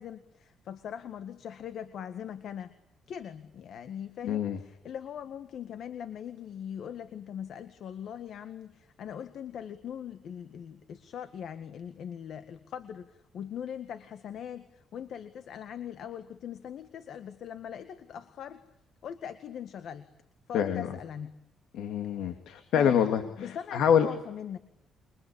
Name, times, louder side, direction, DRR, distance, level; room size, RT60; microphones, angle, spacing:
voice 1, 0.0-2.7 3.1-18.6 19.0-20.1 20.5-21.3 22.3-22.4 22.7-24.6, left 8 dB, 70° left, 10 dB, 1.8 m, -41 dB
voice 2, 4.2-4.6 20.5-21.0 21.7-24.1, left 8 dB, 85° left, 7 dB, 2.5 m, -26 dB
28.5 x 24.0 x 8.6 m, 0.85 s
cardioid pair, 90°, 0 cm